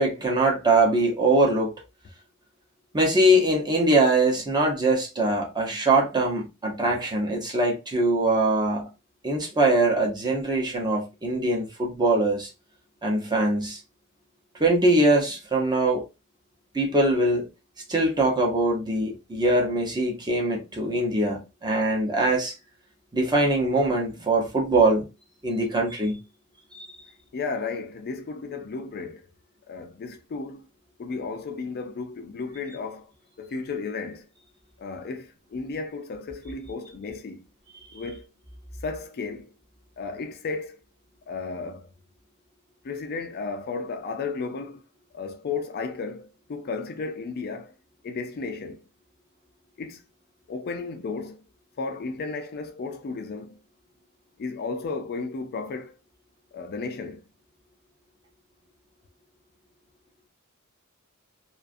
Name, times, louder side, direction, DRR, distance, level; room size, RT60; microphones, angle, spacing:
voice 1, 0.0-1.7 2.9-8.9 9.2-12.5 13.0-13.8 14.6-16.0 16.7-17.4 17.9-22.5 23.1-25.1 25.4-26.2 26.7-26.9, right 2 dB, 20° right, 0.7 m, -22 dB
voice 2, 27.3-29.3 29.7-30.7 31.0-33.1 33.4-34.3 34.8-37.4 37.9-38.3 38.8-39.5 40.0-40.8 41.3-41.9 42.8-44.8 45.1-47.7 48.0-48.9 49.8-50.0 50.5-51.4 51.8-53.6 54.4-55.9 56.5-57.2, left 4 dB, 45° left, 0.4 m, -34 dB
2.4 x 2.4 x 2.4 m
head